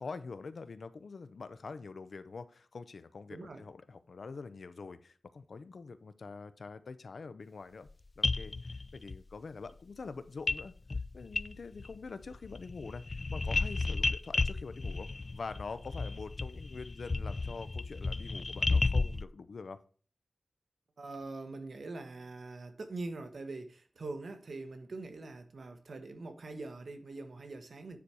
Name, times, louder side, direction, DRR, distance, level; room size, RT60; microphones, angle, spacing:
voice 1, 0.0-7.9 8.2-10.7 11.1-19.8, left 4 dB, 65° left, 0.7 m, -45 dB
voice 2, 3.3-3.6 21.0-28.0, right 3 dB, 65° right, 1.2 m, -43 dB
sound 1, 7.9-8.0 8.2-9.2 10.5-10.6 10.9-12.0 12.2-19.2, left 3 dB, 40° left, 0.3 m, -33 dB
9.6 x 4.3 x 4.8 m
wide cardioid pair, 110°, 0 cm